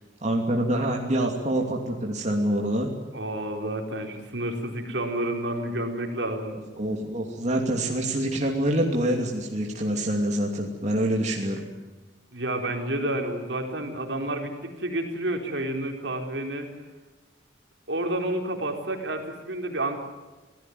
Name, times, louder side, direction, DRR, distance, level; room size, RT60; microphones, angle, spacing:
voice 1, 0.2-2.9 6.5-11.7, right 1 dB, 40° right, 0 dB, 2.9 m, -26 dB
voice 2, 3.1-6.6 12.3-16.7 17.9-20.0, right 1 dB, 70° right, 4 dB, 4.2 m, -30 dB
26.5 x 17.5 x 9.5 m, 1.2 s
head